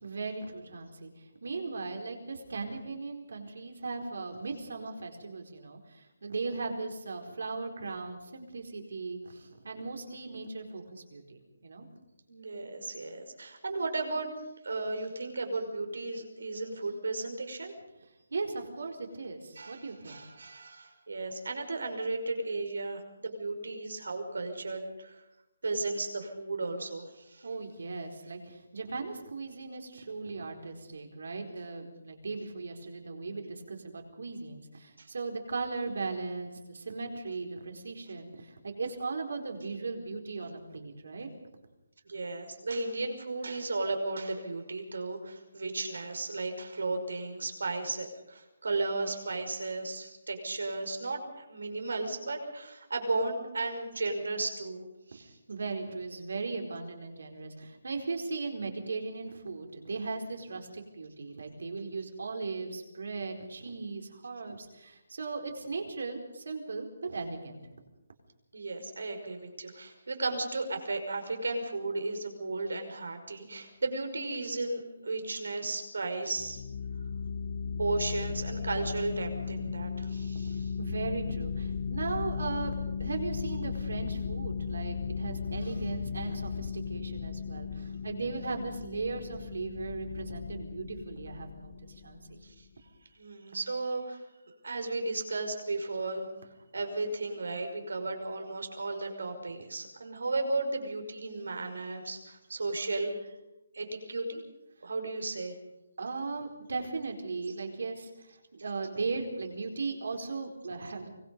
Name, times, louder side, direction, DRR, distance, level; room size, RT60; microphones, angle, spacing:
voice 1, 0.0-11.9 18.3-20.2 27.4-41.4 55.5-67.6 80.8-82.7 83.0-92.4 106.0-111.1, right 3 dB, 60° right, 3 dB, 4.4 m, -38 dB
voice 2, 12.3-14.3 14.6-17.7 19.6-25.2 25.6-27.5 35.0-35.1 42.1-54.8 55.1-55.4 68.5-76.6 77.8-80.7 92.4-92.6 93.2-94.2 94.6-96.3 96.7-103.3 103.7-104.4 104.8-105.6, right 2 dB, 80° right, 6 dB, 5.5 m, -34 dB
sound 1, 76.4-92.6, left 6 dB, 30° left, 0.9 m, -36 dB
24.5 x 20.5 x 5.4 m, 0.95 s
hypercardioid pair, 180°, 0 cm